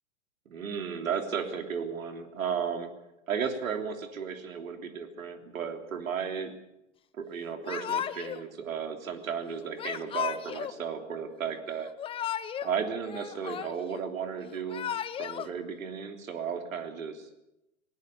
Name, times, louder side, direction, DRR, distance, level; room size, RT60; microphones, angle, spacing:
voice 1, 0.4-2.9 3.3-6.5 7.1-11.9 12.6-14.9 15.2-17.3, right 6 dB, 75° right, 6 dB, 3.3 m, -34 dB
Yell / Crying sobbing, 7.6-8.4 9.8-10.8 11.8-12.7 13.0-14.0 14.5-15.5, left 9 dB, 15° left, 0.7 m, -34 dB
19.0 x 18.5 x 8.4 m, 0.91 s
hypercardioid pair, 125°, 41 cm